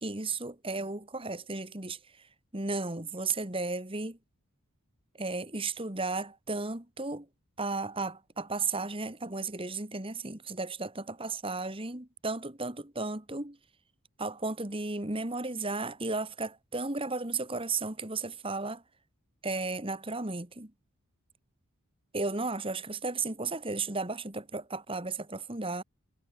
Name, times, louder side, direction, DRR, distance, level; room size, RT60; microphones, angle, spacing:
voice 1, 0.0-2.0 2.5-4.2 5.2-7.3 7.6-13.6 14.2-18.8 19.4-20.7 22.1-25.8, right 3 dB, 25° right, 2.0 m, -34 dB
head